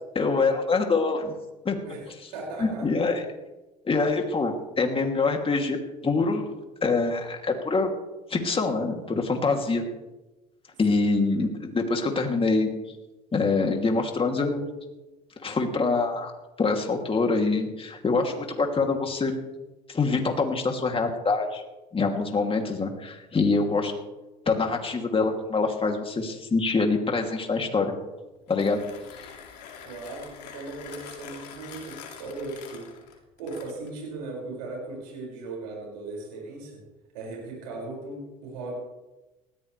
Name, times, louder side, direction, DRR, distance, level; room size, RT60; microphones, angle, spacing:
voice 1, 0.1-1.3 1.6-1.8 2.6-3.2 3.8-5.8 6.0-6.5 6.8-7.9 8.3-9.8 10.8-12.7 13.3-14.7 15.4-16.3 16.6-19.3 19.9-21.6 21.9-23.9 24.5-27.9 28.5-28.8, left 3 dB, 25° left, 3 dB, 2.9 m, -25 dB
voice 2, 2.3-2.9 10.9-11.0 29.8-32.9 33.4-36.8 37.1-38.7, right 3 dB, 80° right, -2 dB, 6.1 m, -37 dB
Mechanisms, 28.3-34.0, left 7 dB, 80° left, 2.6 m, -45 dB
19.0 x 15.0 x 3.4 m, 1.1 s
hypercardioid pair, 70°, 21 cm